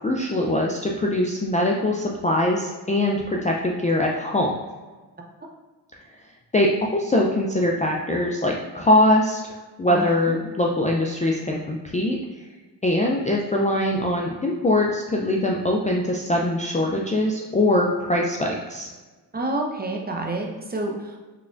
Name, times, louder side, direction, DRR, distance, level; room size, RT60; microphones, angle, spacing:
voice 1, 0.0-4.5 6.5-9.5 9.8-12.2 12.8-18.9, left 1 dB, 15° left, -1 dB, 0.4 m, -22 dB
voice 2, 9.9-10.3 19.3-21.2, right 2 dB, 20° right, 0 dB, 0.7 m, -28 dB
3.6 x 3.2 x 2.5 m, 1.3 s
supercardioid pair, 50°, 45 cm